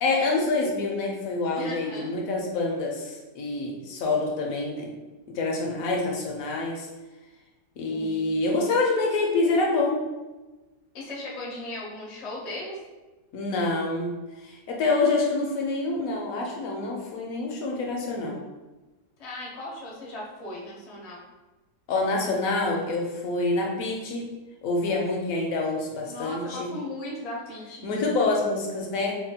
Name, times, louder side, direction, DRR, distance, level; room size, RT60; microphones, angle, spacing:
voice 1, 0.0-4.9 5.3-6.9 7.8-10.0 13.3-14.2 14.4-18.4 21.9-24.3 24.6-26.7 27.8-29.2, left 3 dB, 70° left, 0 dB, 0.8 m, -26 dB
voice 2, 1.6-2.1 7.9-8.3 10.9-12.8 19.2-21.2 26.0-27.9, left 1 dB, 55° left, -3 dB, 0.4 m, -37 dB
4.2 x 2.2 x 2.7 m, 1.2 s
omnidirectional pair, 1.8 m